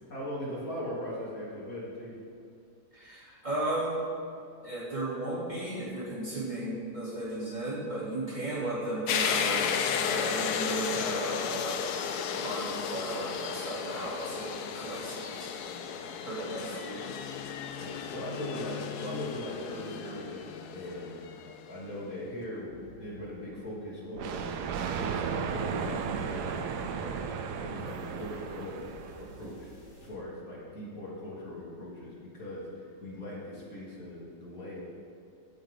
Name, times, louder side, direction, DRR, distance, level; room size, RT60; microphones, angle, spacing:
voice 1, 0.1-2.3 17.8-20.4 20.7-21.2 21.7-24.5 25.0-26.6 26.9-27.2 27.6-34.8, left 1 dB, 60° left, -6 dB, 3.5 m, -40 dB
voice 2, 2.9-4.0 4.6-11.9 12.4-15.5 16.2-17.1, right 1 dB, 25° right, -7 dB, 3.5 m, -35 dB
sound 1, 9.1-21.8, left 7 dB, 75° left, 1.2 m, -34 dB
sound 2, 22.7-30.1, left 2 dB, 30° left, 2.6 m, -52 dB
Thunder, 24.2-29.5, right 6 dB, 80° right, 1.3 m, -35 dB
16.0 x 8.7 x 3.9 m, 2.5 s
omnidirectional pair, 1.7 m